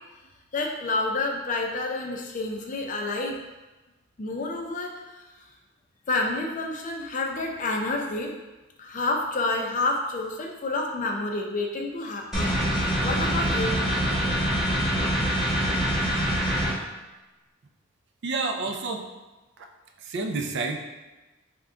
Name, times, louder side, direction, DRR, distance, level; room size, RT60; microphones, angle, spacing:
voice 1, 0.5-3.4 4.2-4.9 6.1-8.3 8.8-12.5 13.0-13.8, left 2 dB, 40° left, 1 dB, 0.4 m, -29 dB
sound 1, 12.3-16.7, equal, 5° right, 1.0 m, -25 dB
voice 2, 18.2-19.1 19.6-19.7 20.0-20.8, right 3 dB, 60° right, 4 dB, 0.4 m, -29 dB
3.5 x 2.2 x 3.7 m, 1.1 s
head